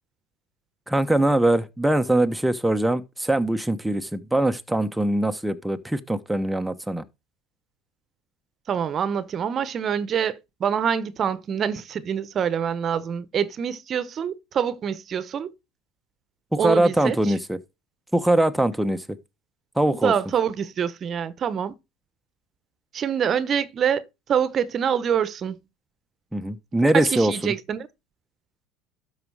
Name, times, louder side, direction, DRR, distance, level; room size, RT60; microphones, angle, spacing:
voice 1, 0.9-7.0 16.5-17.6 18.1-19.0 19.8-20.1 26.3-27.5, right 1 dB, 5° right, 1.0 m, -22 dB
voice 2, 8.7-15.5 16.6-17.2 19.9-21.7 22.9-24.0 24.3-25.6 26.9-27.9, right 8 dB, 40° right, 1.0 m, -25 dB
12.5 x 4.9 x 4.8 m
hypercardioid pair, 85°, 0 cm